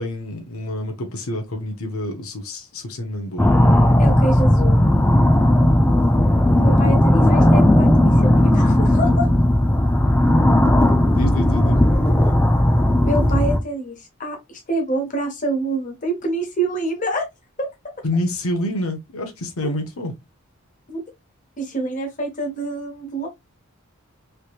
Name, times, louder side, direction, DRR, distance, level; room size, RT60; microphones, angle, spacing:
voice 1, 0.0-3.5 11.1-11.8 18.0-20.1, left 1 dB, 75° left, 0.7 m, -27 dB
sound 1, 3.4-13.6, left 1 dB, 10° left, 0.4 m, -15 dB
voice 2, 4.0-4.8 6.5-9.3 13.0-17.3 17.6-17.7 19.6-19.7 20.9-21.0 21.6-23.3, right 2 dB, 35° left, 0.9 m, -26 dB
3.3 x 3.0 x 2.3 m
head